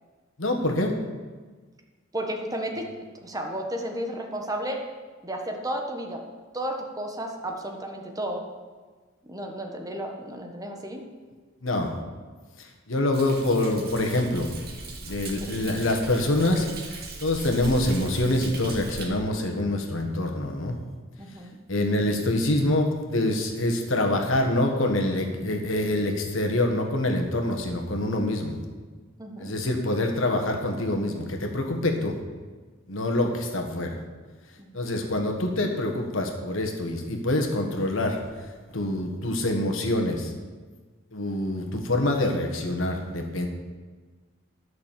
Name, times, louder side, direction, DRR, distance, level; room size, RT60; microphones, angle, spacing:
voice 1, 0.4-1.0 11.6-11.9 12.6-14.5 15.0-20.8 21.7-28.6 29.4-32.2 32.9-34.0 34.7-38.2 38.7-40.3 41.1-43.5, left 1 dB, 70° left, 3 dB, 1.6 m, -25 dB
voice 2, 2.1-2.9 3.2-4.8 5.2-6.2 6.5-8.4 9.2-11.0 15.4-15.5 21.2-21.6 29.2-29.5 34.6-34.7, right 1 dB, 20° right, 2 dB, 1.3 m, -33 dB
Thunder, 13.1-19.0, right 2 dB, 50° right, 2.0 m, -39 dB
11.5 x 6.4 x 7.5 m, 1.4 s
head